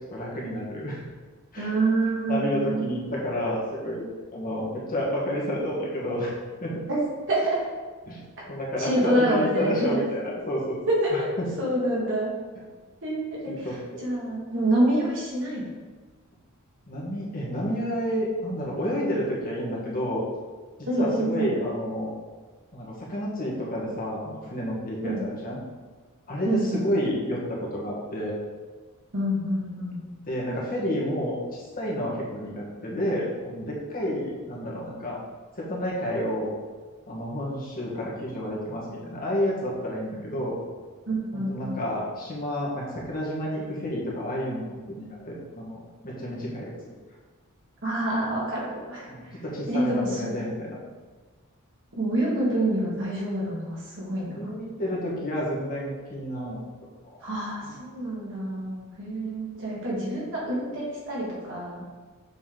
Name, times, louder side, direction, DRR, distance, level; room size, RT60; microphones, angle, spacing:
voice 1, 0.1-1.0 1.5-1.7 2.3-4.0 4.3-6.3 6.6-6.7 8.0-8.2 8.5-10.8 11.1-11.2 13.5-13.7 16.9-20.2 21.0-22.1 22.7-25.6 26.3-28.3 30.3-35.2 35.6-36.5 37.1-40.5 41.3-46.7 49.1-50.8 54.4-56.6, equal, 40° left, -5 dB, 1.5 m, -30 dB
voice 2, 1.6-2.9 6.9-7.0 7.3-7.6 8.8-10.0 10.9-11.3 11.6-12.3 13.0-15.6 20.9-21.5 25.0-25.2 26.4-26.9 29.1-30.0 41.1-41.8 47.8-50.3 51.9-54.5 57.2-61.8, right 1 dB, 60° right, -5 dB, 2.0 m, -27 dB
6.9 x 4.1 x 3.9 m, 1.4 s
head